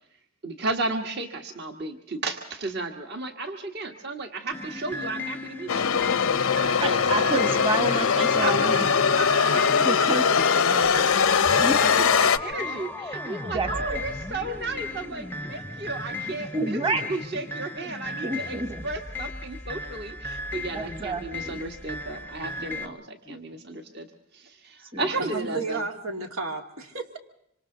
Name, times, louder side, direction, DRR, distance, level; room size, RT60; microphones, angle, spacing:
voice 1, 0.4-5.9 8.4-8.8 9.1-24.1 24.3-25.8, right 2 dB, 50° right, 5 dB, 1.5 m, -34 dB
sound 1, 4.5-22.9, left 2 dB, 10° left, 0.7 m, -36 dB
sound 2, 5.7-12.4, left 6 dB, 85° left, 0.7 m, -21 dB
voice 2, 6.8-9.1 9.5-11.1 11.6-11.9 13.4-14.0 16.5-17.1 18.2-18.8 20.7-21.6 22.6-22.9 23.3-23.4 24.9-25.1, right 2 dB, 25° right, 7 dB, 1.4 m, -30 dB
voice 3, 25.1-27.2, right 3 dB, 85° right, 4 dB, 2.4 m, -32 dB
26.0 x 26.0 x 3.9 m, 0.74 s
head